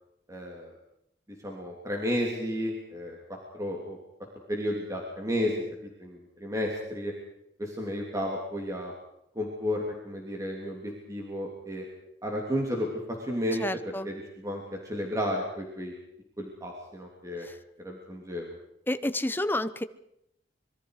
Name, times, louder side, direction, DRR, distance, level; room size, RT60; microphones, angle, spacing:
voice 1, 0.3-0.8 1.4-3.2 3.5-4.0 4.5-5.5 5.8-7.1 7.6-8.9 9.3-11.8 12.2-15.9 16.4-17.5 17.8-18.5, equal, 20° right, -1 dB, 3.2 m, -32 dB
voice 2, 13.6-14.1 17.4-17.5 18.9-19.8, left 1 dB, 10° left, 12 dB, 0.8 m, -30 dB
25.5 x 22.5 x 5.0 m, 0.79 s
head